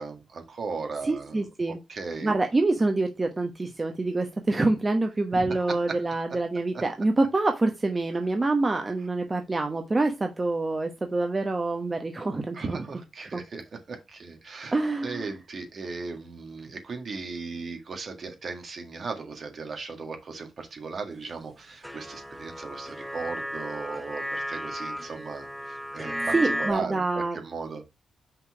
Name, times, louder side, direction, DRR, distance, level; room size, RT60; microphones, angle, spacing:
voice 1, 0.0-1.5 1.9-2.3 5.3-6.0 6.7-6.8 12.5-14.7 15.0-27.9, right 4 dB, 55° right, 1.8 m, -37 dB
voice 2, 1.0-1.8 2.2-12.8 13.3-13.4 14.7-15.3 26.3-27.4, right 2 dB, 35° right, 1.1 m, -26 dB
sound 1, 21.8-26.7, equal, ahead, 0.9 m, -34 dB
5.6 x 4.1 x 4.7 m
hypercardioid pair, 40°, 0 cm